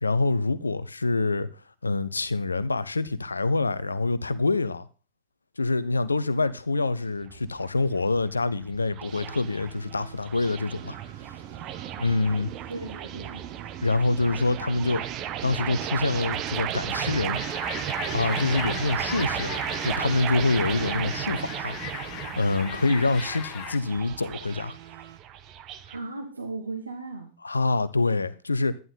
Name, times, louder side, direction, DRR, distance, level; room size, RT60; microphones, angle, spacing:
voice 1, 0.0-1.5 1.8-4.9 5.6-11.0 12.0-12.5 13.8-15.0 15.4-17.4 18.1-19.5 19.8-21.8 22.4-24.8 27.4-28.8, left 3 dB, 80° left, 0.7 m, -26 dB
sound 1, 7.0-26.0, right 11 dB, 35° right, 1.0 m, -34 dB
sound 2, 9.1-25.2, right 9 dB, 60° right, 1.1 m, -48 dB
voice 2, 12.7-13.4 22.6-23.0 25.9-27.3, right 3 dB, 80° right, 1.7 m, -37 dB
sound 3, 17.3-23.8, left 12 dB, 40° left, 1.0 m, -38 dB
11.0 x 11.0 x 3.8 m
figure-of-eight pair, 90°, 0 cm